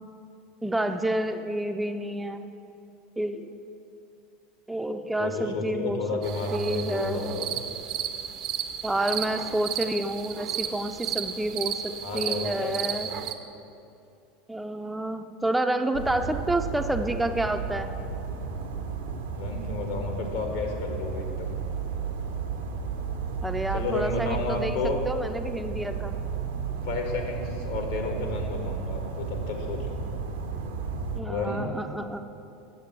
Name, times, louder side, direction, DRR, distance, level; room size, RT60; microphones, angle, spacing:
voice 1, 0.6-2.4 3.2-3.5 4.7-6.2 6.5-7.4 8.8-13.1 14.5-17.9 23.4-26.2 31.2-32.2, right 1 dB, 10° right, 7 dB, 0.4 m, -29 dB
voice 2, 5.2-7.5 12.0-13.1 19.3-21.6 23.7-25.0 26.8-30.0 31.3-31.7, left 3 dB, 70° left, 2 dB, 1.4 m, -31 dB
sound 1, 6.2-13.3, right 9 dB, 50° right, 0.6 m, -33 dB
sound 2, 15.9-31.2, right 5 dB, 80° right, 0.8 m, -33 dB
7.5 x 7.2 x 5.8 m, 2.7 s
hypercardioid pair, 80°, 0 cm